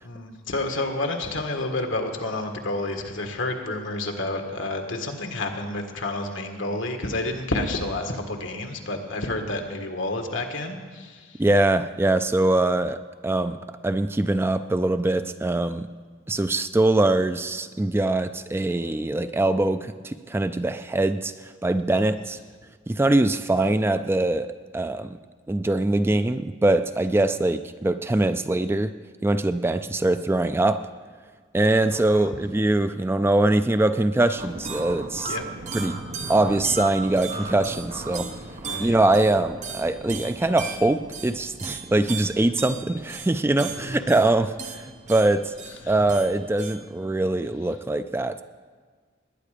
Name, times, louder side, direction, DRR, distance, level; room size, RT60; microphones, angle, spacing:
voice 1, 0.0-11.4 31.9-32.3 35.2-35.4 38.7-38.9 43.6-44.1 45.8-45.9, left 2 dB, 75° left, 4 dB, 1.7 m, -30 dB
voice 2, 11.4-15.9 16.3-22.4 22.9-25.2 25.5-28.9 29.2-30.9 31.5-35.4 35.7-36.0 36.3-38.3 38.8-45.5 45.9-48.4, right 2 dB, 10° right, 10 dB, 0.3 m, -23 dB
sound 1, 34.4-46.8, right 3 dB, 40° right, 1.0 m, -36 dB
19.5 x 9.8 x 5.1 m, 1.6 s
head